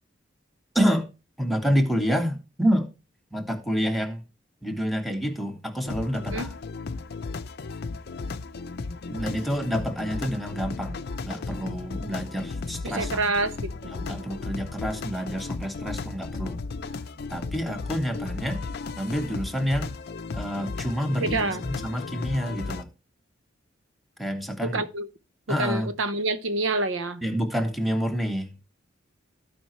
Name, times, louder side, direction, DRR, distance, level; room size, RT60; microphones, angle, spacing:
voice 1, 0.7-1.1 1.4-2.9 3.3-4.2 4.6-6.5 9.1-11.0 11.2-13.2 13.9-16.6 17.3-18.6 19.0-19.9 20.3-22.9 24.2-24.8 25.5-25.9 27.2-28.5, equal, ahead, 1.2 m, -28 dB
sound 1, 5.8-22.8, left 4 dB, 55° left, 0.5 m, -35 dB
voice 2, 12.8-14.3 21.2-21.6 24.6-25.1 25.6-27.2, right 2 dB, 75° right, 0.7 m, -28 dB
15.0 x 5.1 x 3.1 m
head